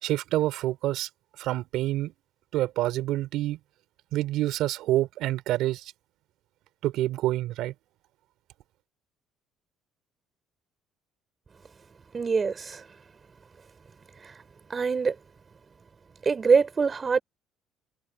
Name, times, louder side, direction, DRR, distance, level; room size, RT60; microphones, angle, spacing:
voice 1, 0.0-1.1 1.4-2.1 2.5-3.6 4.1-5.8 6.8-7.7, right 15 dB, 75° right, 4.3 m, -27 dB
voice 2, 12.1-12.8 14.7-15.1 16.3-17.2, right 5 dB, 30° right, 6.0 m, -23 dB
supercardioid pair, 85°, 0 cm